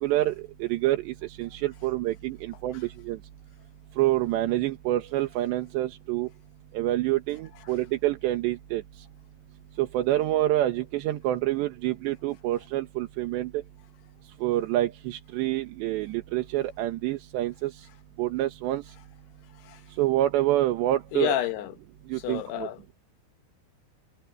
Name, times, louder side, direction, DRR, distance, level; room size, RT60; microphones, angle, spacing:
voice 1, 0.0-0.4 0.6-3.2 4.0-6.3 6.8-8.8 9.8-13.5 14.4-17.7 18.2-18.8 20.0-21.3 22.1-22.7, right 15 dB, 80° right, 3.5 m, -27 dB
voice 2, 21.1-21.7 22.2-22.8, left 13 dB, 75° left, 2.9 m, -29 dB
omnidirectional pair, 5.1 m